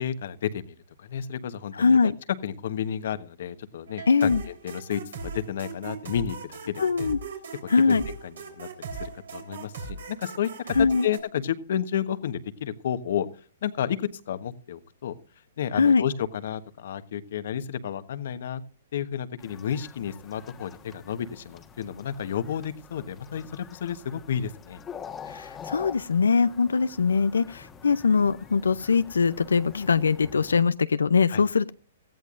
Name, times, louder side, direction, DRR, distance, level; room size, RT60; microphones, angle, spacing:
voice 1, 0.0-2.1 2.4-4.3 4.6-7.1 7.9-10.8 11.0-13.3 13.6-15.1 15.6-18.6 18.9-24.8 31.3-31.4, left 9 dB, 65° left, 12 dB, 1.2 m, -31 dB
voice 2, 1.7-2.2 4.1-4.4 6.8-7.2 7.7-8.0 10.8-11.1 15.7-16.0 25.3-31.7, left 5 dB, 85° left, 14 dB, 0.5 m, -22 dB
sound 1, 3.9-11.2, right 4 dB, 75° right, 3.8 m, -38 dB
sound 2, 19.4-30.7, left 7 dB, 20° left, 1.3 m, -46 dB
18.0 x 14.5 x 2.5 m, 0.37 s
hypercardioid pair, 125°, 0 cm